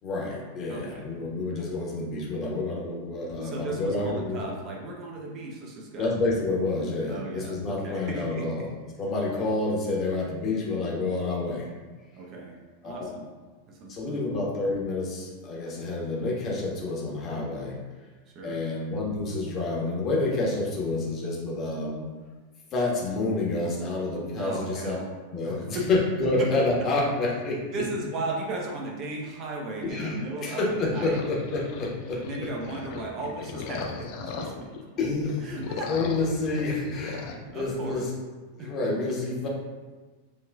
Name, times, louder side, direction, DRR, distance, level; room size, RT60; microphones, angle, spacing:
voice 1, 0.0-4.5 6.0-8.7 9.0-11.7 12.8-13.0 13.9-17.8 18.4-22.0 22.7-24.9 25.3-27.6 29.8-32.2 35.0-35.5 35.9-38.1 38.5-39.5, left 2 dB, 30° left, -3 dB, 1.3 m, -28 dB
voice 2, 0.7-1.1 3.3-6.1 7.1-8.5 12.2-12.6 12.8-13.3 13.7-14.2 18.3-18.6 24.4-25.0 25.4-25.8 26.4-26.5 27.7-31.2 32.1-34.7 35.4-35.9 37.2-38.0 38.6-38.9, right 2 dB, 35° right, -1 dB, 0.8 m, -36 dB
sound 1, 30.9-34.8 35.2-37.4, left 5 dB, 45° left, 0.5 m, -38 dB
7.4 x 3.0 x 2.3 m, 1.4 s
figure-of-eight pair, 90°, 0 cm